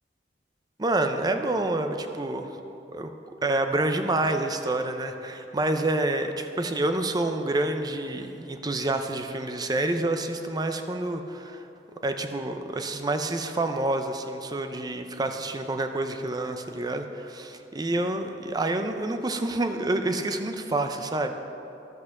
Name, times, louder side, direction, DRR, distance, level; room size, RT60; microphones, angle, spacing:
voice 1, 0.8-2.5 2.9-3.1 3.4-11.7 12.0-21.3, right 2 dB, 20° right, 6 dB, 0.5 m, -28 dB
12.0 x 5.9 x 6.5 m, 2.9 s
head